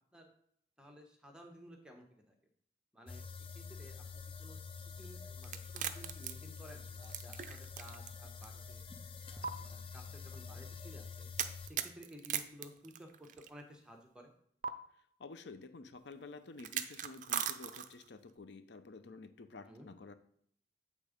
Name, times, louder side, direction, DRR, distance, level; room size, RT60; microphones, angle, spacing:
voice 1, 0.8-2.3 2.9-3.2 3.5-4.0 4.4-4.6 5.0-8.8 9.3-11.3 11.6-14.3 19.7-19.9, equal, 5° right, 2 dB, 1.1 m, -55 dB
sound 1, 3.1-11.7, left 5 dB, 30° left, 0.6 m, -47 dB
sound 2, 5.4-8.1 8.4-8.5 9.4-9.5 11.4-13.5 14.6-14.7 16.6-18.1, right 9 dB, 45° right, 0.4 m, -39 dB
voice 2, 15.2-20.1, left 3 dB, 70° left, 10 dB, 0.6 m, -51 dB
8.4 x 3.6 x 5.1 m, 0.68 s
head